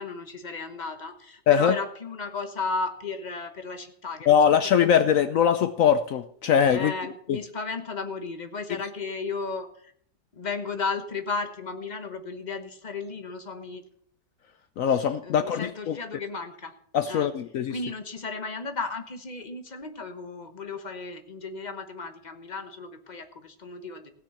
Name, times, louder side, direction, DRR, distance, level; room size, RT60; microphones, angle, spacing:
voice 1, 0.0-4.4 4.8-5.0 6.7-9.9 10.3-13.8 15.2-16.7 17.1-17.3 17.7-24.2, left 4 dB, 30° left, 7 dB, 1.1 m, -34 dB
voice 2, 1.5-1.8 4.3-6.9 7.3-7.4 14.8-16.0 16.9-17.8, left 8 dB, 65° left, 11 dB, 0.9 m, -21 dB
16.5 x 6.3 x 7.0 m, 0.65 s
omnidirectional pair, 1.8 m